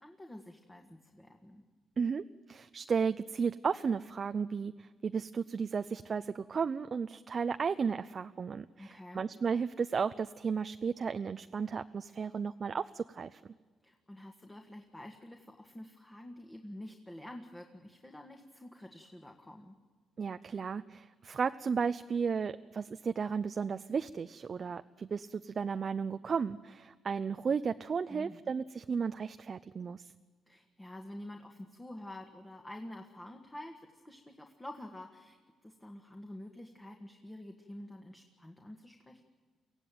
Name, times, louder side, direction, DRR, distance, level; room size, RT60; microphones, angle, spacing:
voice 1, 0.0-1.6 8.8-9.3 13.8-19.8 28.1-28.4 30.5-35.4 35.6-39.2, left 1 dB, 15° left, 3 dB, 1.8 m, -48 dB
voice 2, 2.0-13.4 20.2-30.1, right 6 dB, 45° right, 10 dB, 0.6 m, -34 dB
23.5 x 16.0 x 9.3 m, 1.5 s
cardioid pair, 90°, 0 cm